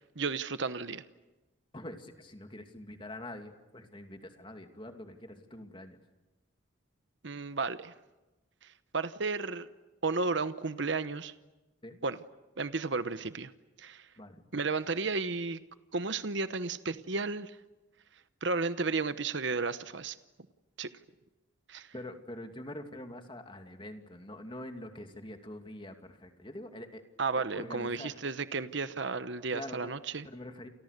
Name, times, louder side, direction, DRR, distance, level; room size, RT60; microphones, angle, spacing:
voice 1, 0.2-1.0 7.2-7.9 8.9-9.7 10.0-11.3 12.0-12.2 12.6-13.5 13.8-14.0 14.5-15.6 15.9-17.5 18.4-20.2 20.8-20.9 21.7-21.9 27.2-30.3, right 4 dB, 65° right, 12 dB, 1.0 m, -33 dB
voice 2, 1.7-6.0 11.8-12.0 14.2-14.4 21.9-27.0 27.4-28.1 29.5-30.7, left 1 dB, 25° left, 6 dB, 2.6 m, -45 dB
29.5 x 28.5 x 6.7 m, 1.1 s
head